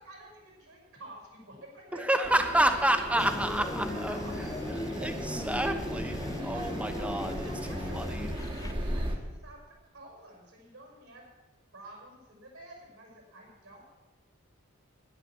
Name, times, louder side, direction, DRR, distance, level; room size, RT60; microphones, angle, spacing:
voice 1, 0.0-2.5 3.0-5.4 6.2-6.3 6.5-6.7 6.9-8.2 8.6-9.6 9.9-11.3 11.7-13.8, right 1 dB, 65° right, -1 dB, 5.4 m, -49 dB
voice 2, 1.9-4.2 4.8-7.5 7.9-8.3, right 1 dB, 5° right, 7 dB, 0.9 m, -29 dB
sound 1, 2.2-9.2, equal, 20° right, 1.7 m, -37 dB
sound 2, 3.2-8.7, left 1 dB, 15° left, 0.5 m, -37 dB
11.0 x 10.5 x 7.3 m, 1.2 s
head